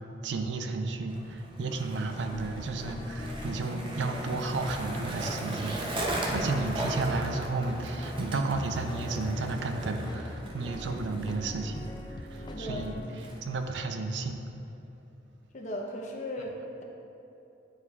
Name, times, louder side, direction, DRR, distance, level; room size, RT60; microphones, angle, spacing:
voice 1, 0.2-11.9 12.3-13.0 13.4-14.4, right 3 dB, 85° right, 6 dB, 0.5 m, -33 dB
Skateboard, 1.1-13.8, right 1 dB, 30° right, 0.6 m, -38 dB
sound 1, 2.2-13.0, left 1 dB, 25° left, 0.4 m, -42 dB
voice 2, 12.5-12.8 13.1-13.4 15.5-16.8, left 1 dB, 45° left, 0 dB, 0.7 m, -37 dB
9.1 x 4.6 x 2.4 m, 2.7 s
head